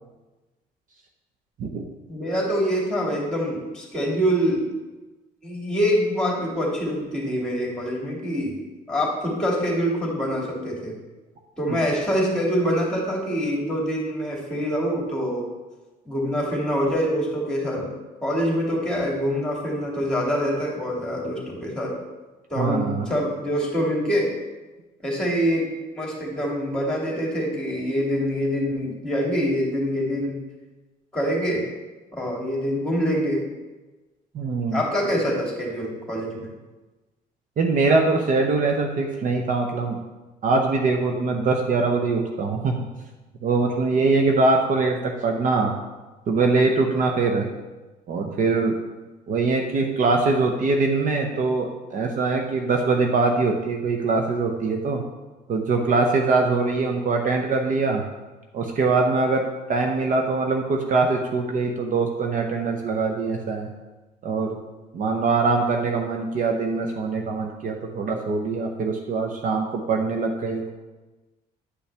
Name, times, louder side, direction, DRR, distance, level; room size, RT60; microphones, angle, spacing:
voice 1, 2.1-4.6 5.4-8.6 8.9-10.9 11.6-15.5 16.1-17.9 18.2-21.9 22.5-24.3 25.0-30.4 31.1-31.6 32.1-33.4 34.7-36.5, equal, 5° left, -3 dB, 2.5 m, -25 dB
voice 2, 22.6-23.1 34.3-35.1 37.6-40.0 40.4-42.7 43.4-45.7 46.3-47.5 48.1-48.7 49.3-55.0 55.5-58.0 58.5-63.7 64.2-64.6 64.9-70.7, right 3 dB, 50° right, 2 dB, 0.8 m, -23 dB
9.7 x 5.4 x 3.4 m, 1.2 s
cardioid pair, 110°, 17 cm